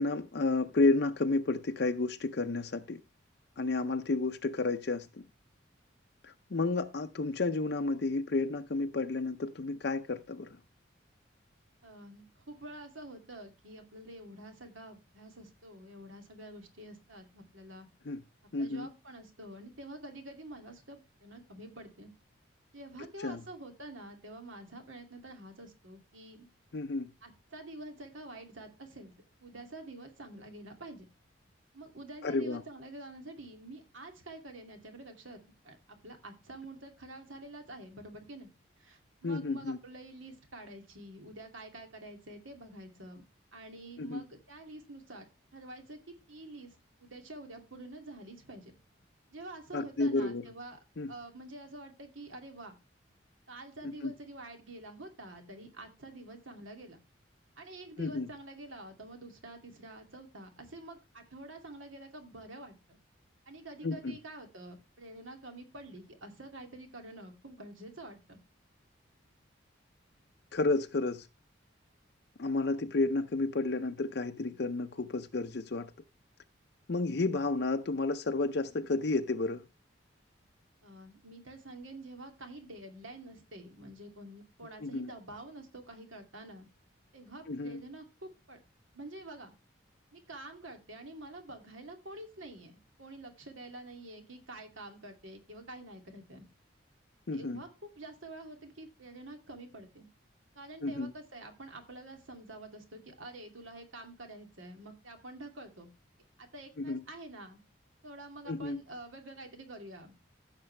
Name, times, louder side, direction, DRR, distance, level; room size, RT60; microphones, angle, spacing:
voice 1, 0.0-3.0 3.6-5.2 6.2-10.5 18.1-18.2 18.5-18.9 23.2-23.4 26.7-27.1 32.2-32.6 39.2-39.8 44.0-44.2 49.7-50.4 51.0-51.1 54.0-54.1 58.0-58.3 63.8-64.1 70.5-71.3 72.4-75.9 76.9-79.6 84.8-85.1 87.5-87.8 97.3-97.6 100.8-101.1 106.8-107.0 108.5-108.8, left 3 dB, 55° left, 0.6 m, -31 dB
voice 2, 11.8-17.9 18.6-22.1 22.7-26.5 27.2-29.1 29.4-31.1 31.7-35.4 35.6-38.5 38.8-43.2 43.5-46.7 47.0-48.8 49.3-50.8 51.1-52.8 53.5-57.0 57.6-63.0 63.5-68.4 80.8-86.7 87.1-88.6 88.9-89.5 90.1-96.5 97.3-100.1 100.5-105.9 106.4-107.6 108.0-110.2, right 2 dB, 80° right, 2.6 m, -48 dB
15.5 x 6.7 x 3.3 m
head